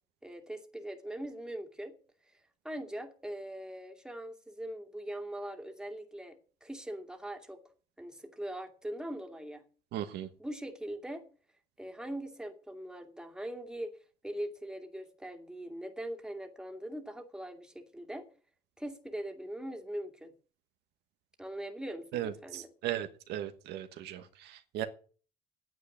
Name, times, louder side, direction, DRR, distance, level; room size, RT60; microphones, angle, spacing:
voice 1, 0.2-1.9 2.3-6.4 6.6-7.6 8.0-9.6 10.4-11.2 11.8-13.9 14.2-18.3 18.8-20.3 21.4-22.7, right 1 dB, 5° right, 4 dB, 2.4 m, -41 dB
voice 2, 9.9-10.3 22.1-24.9, right 12 dB, 80° right, 8 dB, 1.3 m, -37 dB
9.5 x 8.3 x 9.6 m, 0.41 s
cardioid pair, 110°, 17 cm